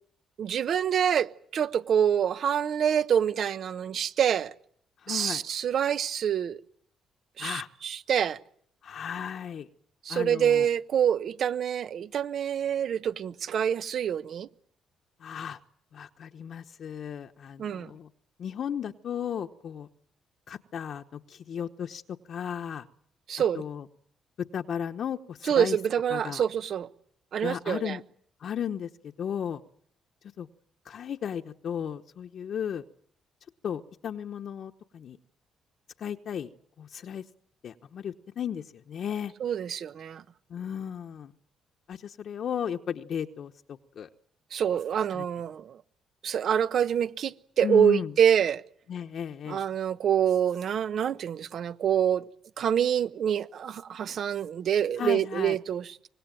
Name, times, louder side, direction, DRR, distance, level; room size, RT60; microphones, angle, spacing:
voice 1, 0.4-4.5 5.1-6.6 7.4-8.4 10.0-14.5 17.6-17.9 23.3-23.6 25.4-26.9 27.3-28.0 39.4-40.2 44.5-45.8 46.2-48.6 49.5-52.2 52.6-56.0, right 9 dB, 60° right, 1.0 m, -26 dB
voice 2, 5.0-5.4 7.4-7.7 8.8-9.7 10.1-10.7 15.2-15.6 15.9-18.1 18.4-19.9 20.5-22.0 22.3-22.9 23.5-23.8 24.4-25.8 26.1-26.4 27.4-28.0 28.4-29.6 30.4-30.5 30.8-32.8 33.6-35.2 36.0-36.5 36.8-37.2 37.6-39.3 40.5-41.3 41.9-44.1 45.1-45.2 47.6-48.1 48.9-49.6 55.0-55.6, left 8 dB, 60° left, 1.0 m, -35 dB
25.0 x 20.0 x 9.1 m
cardioid pair, 90°, 0 cm